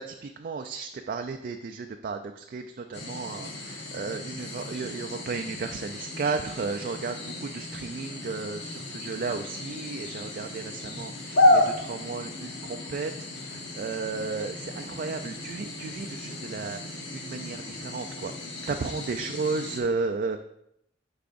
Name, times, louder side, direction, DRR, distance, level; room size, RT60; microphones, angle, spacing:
voice 1, 0.0-20.4, right 4 dB, 50° right, 5 dB, 0.3 m, -34 dB
sound 1, 2.9-19.8, left 1 dB, 85° left, 1.2 m, -32 dB
10.5 x 4.9 x 2.5 m, 0.76 s
head